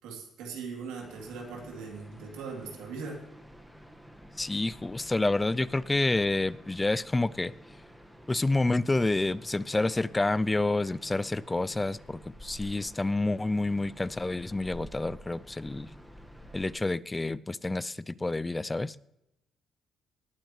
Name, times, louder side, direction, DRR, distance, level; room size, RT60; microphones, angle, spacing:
voice 1, 0.0-3.2, right 5 dB, 90° right, 0 dB, 3.2 m, -40 dB
sound 1, 1.0-16.7, equal, ahead, 1.6 m, -50 dB
voice 2, 4.4-7.5 8.3-15.9 16.5-19.0, left 2 dB, 20° left, 20 dB, 0.4 m, -28 dB
19.0 x 9.0 x 3.2 m, 0.86 s
supercardioid pair, 75°, 0 cm